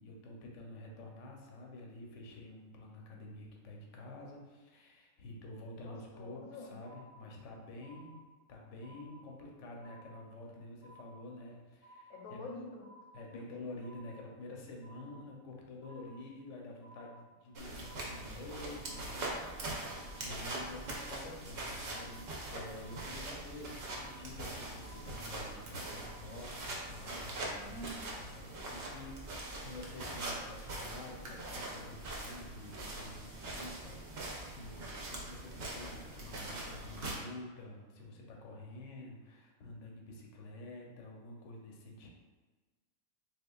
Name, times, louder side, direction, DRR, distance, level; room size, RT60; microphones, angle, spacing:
voice 1, 0.0-12.5 13.1-42.1, left 2 dB, 65° left, 0 dB, 0.9 m, -49 dB
voice 2, 5.8-6.7 12.1-12.8 27.5-28.0, left 1 dB, 80° left, -1 dB, 1.2 m, -46 dB
sound 1, 6.8-7.5 7.8-8.5 8.8-9.5 9.8-10.5 10.8-11.5 11.8-12.5 12.8-13.5 13.8-14.5 14.8-15.5 15.8-16.5 16.8-17.5 17.8-18.5 18.8-19.5 19.8-20.5 20.8-21.5 21.8-22.5 22.8-23.5 23.8-24.5 24.8-25.5 25.8-26.5, right 1 dB, 5° right, 0.5 m, -58 dB
sound 2, 17.5-37.2, right 2 dB, 55° right, 0.8 m, -42 dB
3.7 x 3.4 x 2.3 m, 1.3 s
omnidirectional pair, 1.5 m